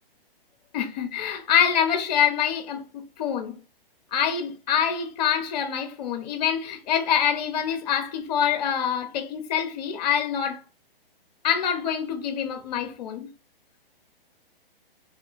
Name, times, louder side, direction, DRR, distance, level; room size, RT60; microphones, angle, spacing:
voice 1, 0.7-3.5 4.1-10.6 11.4-13.3, left 8 dB, 45° left, 0.6 m, -25 dB
3.0 x 2.1 x 2.4 m
hypercardioid pair, 135°, 29 cm